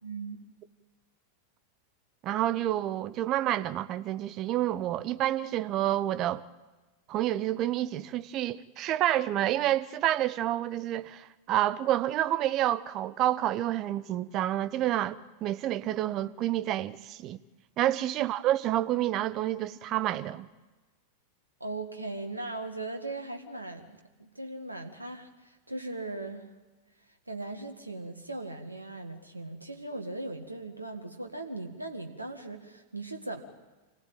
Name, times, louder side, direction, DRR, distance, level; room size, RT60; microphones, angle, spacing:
voice 1, 0.0-0.4 17.8-17.9 21.6-26.4 27.3-33.4, right 2 dB, 85° right, 1.8 m, -39 dB
voice 2, 2.2-6.4 7.1-17.4 17.8-20.5, right 13 dB, 35° right, 0.9 m, -29 dB
26.0 x 16.0 x 9.2 m
figure-of-eight pair, 90°, 0 cm